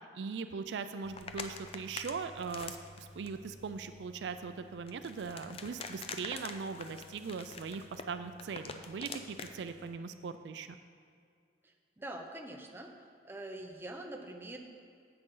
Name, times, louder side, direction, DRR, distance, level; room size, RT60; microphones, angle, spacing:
voice 1, 0.1-10.7, right 5 dB, 70° right, 10 dB, 0.4 m, -40 dB
sound 1, 1.0-10.0, left 4 dB, 30° left, 0.4 m, -47 dB
voice 2, 11.6-14.6, right 1 dB, 10° right, 2 dB, 0.7 m, -45 dB
10.0 x 7.8 x 3.8 m, 2.2 s
head